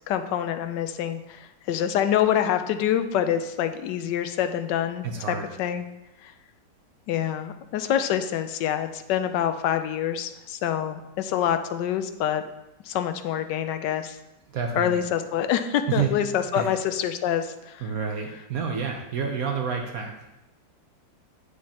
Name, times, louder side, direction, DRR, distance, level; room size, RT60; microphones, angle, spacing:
voice 1, 0.1-5.8 6.2-6.3 7.1-12.4 12.8-14.2 14.8-17.9, left 10 dB, 75° left, 9 dB, 1.1 m, -26 dB
voice 2, 5.0-5.5 14.5-15.0 15.9-16.1 16.5-16.7 17.8-20.1, right 6 dB, 65° right, 3 dB, 1.0 m, -29 dB
8.1 x 6.3 x 2.9 m, 0.93 s
omnidirectional pair, 2.0 m